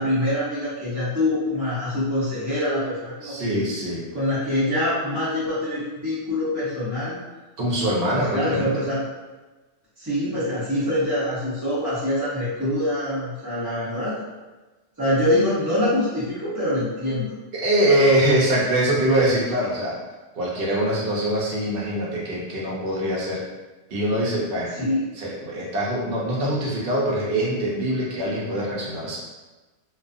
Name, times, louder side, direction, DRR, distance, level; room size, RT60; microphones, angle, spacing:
voice 1, 0.0-3.6 4.1-7.2 8.1-9.0 10.0-14.2 15.0-17.3 24.7-25.1, left 1 dB, 20° right, -15 dB, 0.7 m, -25 dB
voice 2, 3.2-4.0 7.6-8.8 17.5-20.0 20.3-23.4 23.9-24.7 25.2-29.2, right 1 dB, 55° right, -4 dB, 0.8 m, -23 dB
2.5 x 2.3 x 2.4 m, 1.2 s
omnidirectional pair, 1.2 m